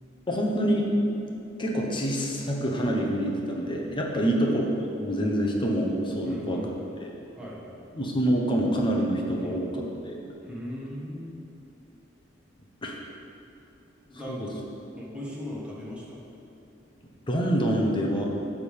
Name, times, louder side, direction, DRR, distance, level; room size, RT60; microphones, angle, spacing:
voice 1, 0.3-0.9 1.6-6.6 7.0-7.1 7.9-10.2 12.8-13.0 14.3-14.5 17.3-18.3, equal, 25° left, -1 dB, 1.0 m, -26 dB
voice 2, 6.2-7.8 9.4-9.6 10.4-11.4 14.1-14.6 15.0-16.2, left 1 dB, 5° right, -6 dB, 1.5 m, -39 dB
9.7 x 3.7 x 6.7 m, 2.8 s
head